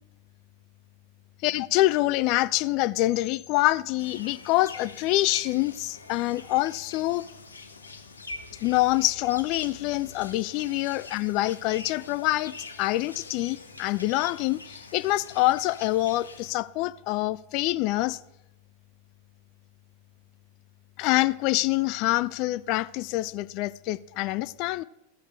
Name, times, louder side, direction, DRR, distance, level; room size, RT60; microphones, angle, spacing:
voice 1, 1.4-7.2 8.6-18.2 21.0-24.8, left 18 dB, 40° left, 0.3 m, -26 dB
sound 1, 4.0-16.5, left 3 dB, 75° left, 0.7 m, -44 dB
sound 2, 8.3-11.3, left 6 dB, 5° left, 2.5 m, -54 dB
15.0 x 6.4 x 3.3 m
figure-of-eight pair, 90°, 0 cm